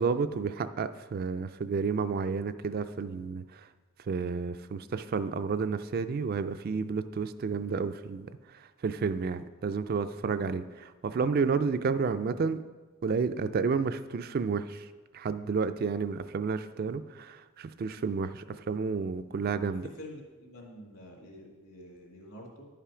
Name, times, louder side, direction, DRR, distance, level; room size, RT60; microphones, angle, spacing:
voice 1, 0.0-3.7 4.1-8.3 8.8-12.6 13.0-14.9 15.1-19.8, right 5 dB, 45° right, 11 dB, 0.3 m, -31 dB
voice 2, 19.8-22.6, left 1 dB, 65° left, -1 dB, 2.4 m, -47 dB
10.5 x 5.7 x 4.9 m, 1.3 s
head